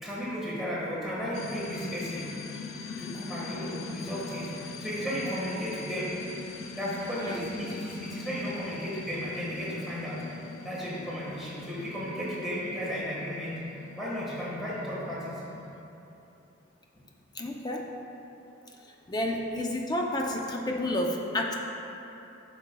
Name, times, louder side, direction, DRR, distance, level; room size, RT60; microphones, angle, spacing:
voice 1, 0.0-2.3 3.0-6.1 6.7-10.2 10.6-13.5 14.0-15.3, equal, ahead, -8 dB, 1.4 m, -34 dB
sound 1, 1.3-15.8, left 3 dB, 90° left, 0.5 m, -42 dB
voice 2, 7.2-7.5 17.3-17.9 19.1-21.6, left 1 dB, 20° left, 1 dB, 0.5 m, -30 dB
9.6 x 6.1 x 2.2 m, 3.0 s
head